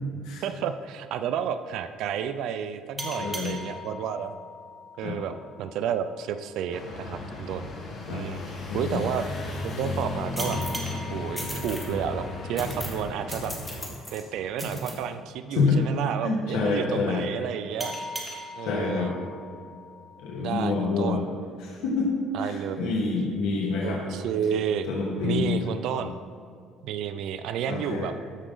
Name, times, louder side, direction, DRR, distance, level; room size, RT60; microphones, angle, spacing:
voice 1, 0.4-4.3 5.0-5.3 5.6-7.7 8.1-9.3 9.6-10.6 11.1-13.5 14.1-17.9 18.6-19.1 20.4-21.2 22.3-22.9 23.8-24.9 25.2-26.2 26.8-28.1, right 8 dB, 70° right, 9 dB, 0.4 m, -31 dB
voice 2, 2.9-3.5 5.0-5.2 8.1-8.2 8.7-9.0 15.5-15.8 16.2-17.2 18.6-19.1 20.2-21.2 21.6-22.1 22.4-24.0 24.9-25.8 27.7-28.1, left 4 dB, 90° left, -3 dB, 1.4 m, -27 dB
sound 1, 3.0-6.2 10.4-13.6 17.8-20.7, left 1 dB, 15° right, 1.2 m, -40 dB
sound 2, 6.7-13.9, left 3 dB, 45° left, 1.6 m, -35 dB
sound 3, 10.4-10.9 11.4-11.9 12.6-13.0 13.3-14.2 14.6-14.9, equal, 5° left, 1.4 m, -35 dB
12.5 x 5.1 x 3.8 m, 2.3 s
cardioid pair, 130°, 0 cm